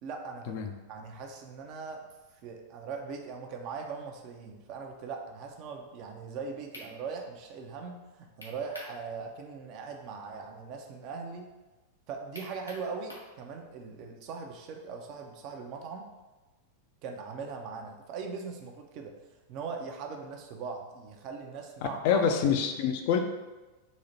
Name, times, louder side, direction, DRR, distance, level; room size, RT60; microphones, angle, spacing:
voice 1, 0.0-0.6 0.9-2.0 2.4-11.5 12.1-16.0 17.0-19.1 19.5-22.2, right 5 dB, 40° right, 3 dB, 0.6 m, -40 dB
sound 1, 6.7-6.9 8.4-9.0 9.3-9.4 12.3-13.3, left 1 dB, 85° left, 0.9 m, -45 dB
voice 2, 21.8-23.2, left 7 dB, 50° left, 5 dB, 0.5 m, -26 dB
4.1 x 2.8 x 4.0 m, 1.2 s
figure-of-eight pair, 90°, 0 cm